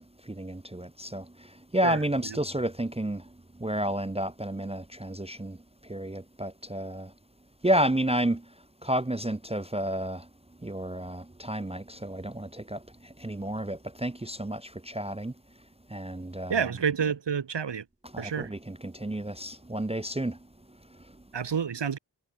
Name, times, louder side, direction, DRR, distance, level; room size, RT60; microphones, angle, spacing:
voice 1, 0.0-7.1 7.6-10.3 10.6-15.4 15.9-16.6 18.0-21.2, right 1 dB, 15° right, 0.6 m, -31 dB
voice 2, 16.5-17.8 18.2-18.5 21.3-22.0, right 7 dB, 75° right, 1.0 m, -29 dB
wide cardioid pair, 60°, 43 cm